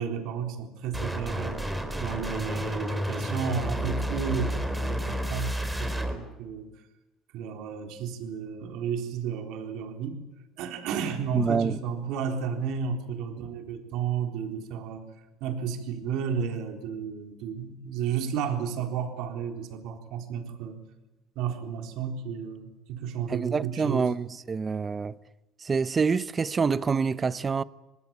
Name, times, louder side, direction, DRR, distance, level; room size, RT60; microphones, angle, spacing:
voice 1, 0.0-1.6 2.0-6.7 7.3-10.2 10.6-15.1 15.4-20.8 21.4-24.1, right 7 dB, 75° right, 3.9 m, -32 dB
sound 1, 0.9-6.1, equal, 5° right, 4.3 m, -31 dB
voice 2, 11.3-11.8 23.3-25.2 25.6-27.6, right 5 dB, 30° right, 0.9 m, -26 dB
26.5 x 19.5 x 8.8 m
supercardioid pair, 95°, 0 cm